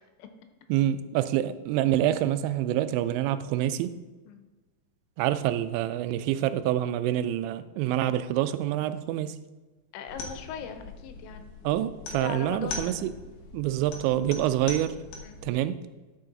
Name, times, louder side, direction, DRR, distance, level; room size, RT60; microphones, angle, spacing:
voice 1, 0.7-3.9 5.2-9.4 11.6-13.1 13.5-15.0 15.4-15.8, right 12 dB, 90° right, 13 dB, 2.9 m, -26 dB
voice 2, 9.9-11.5 12.2-13.0 15.2-15.4, left 8 dB, 85° left, 7 dB, 3.1 m, -39 dB
sound 1, 10.1-15.5, left 3 dB, 65° left, 2.0 m, -41 dB
11.0 x 6.5 x 3.9 m, 1.2 s
omnidirectional pair, 5.1 m